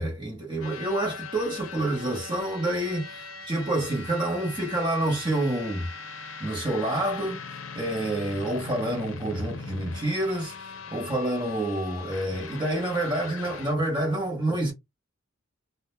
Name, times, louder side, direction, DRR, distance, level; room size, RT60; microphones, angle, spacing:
voice 1, 0.0-5.9 6.4-7.5 7.7-14.7, right 1 dB, 25° right, 0.8 m, -28 dB
sound 1, 0.6-13.7, left 4 dB, 85° left, 0.5 m, -40 dB
2.1 x 2.0 x 2.9 m
head